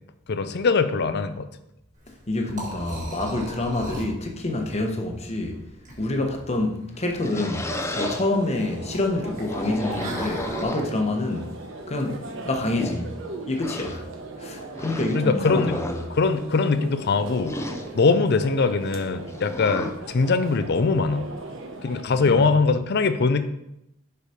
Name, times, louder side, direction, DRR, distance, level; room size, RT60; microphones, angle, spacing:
voice 1, 0.3-1.5 15.1-15.8 16.1-17.6 17.9-21.3 21.8-23.5, left 4 dB, 55° left, 11 dB, 0.5 m, -22 dB
Liquid, 1.9-10.6, right 1 dB, 40° right, 2.0 m, -39 dB
voice 2, 2.3-5.6 6.0-7.6 7.9-11.5 11.9-13.1 13.5-14.1 14.4-16.0 22.1-22.4, left 2 dB, 35° left, 3 dB, 1.0 m, -27 dB
sound 1, 6.9-8.2 9.2-11.2 12.0-12.1 12.6-13.0 13.6-14.0 14.7-15.2 15.6-16.0 17.4-17.9 19.3-20.0, left 1 dB, 15° left, 0.6 m, -33 dB
sound 2, 7.7-22.0, right 2 dB, 70° right, 1.0 m, -38 dB
6.9 x 4.9 x 5.0 m, 0.84 s
head